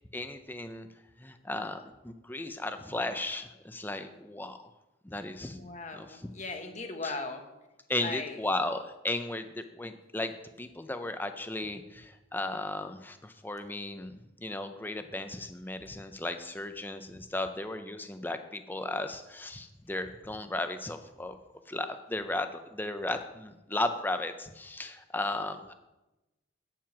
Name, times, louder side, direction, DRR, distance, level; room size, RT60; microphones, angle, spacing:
voice 1, 0.1-0.9 1.2-4.6 5.0-5.6 5.9-6.3 7.0-7.2 7.9-21.4 21.7-25.7, left 2 dB, 10° left, 8 dB, 0.6 m, -35 dB
voice 2, 5.5-7.4 8.0-8.4, left 3 dB, 35° left, 5 dB, 1.1 m, -38 dB
9.1 x 7.5 x 6.0 m, 1.0 s
head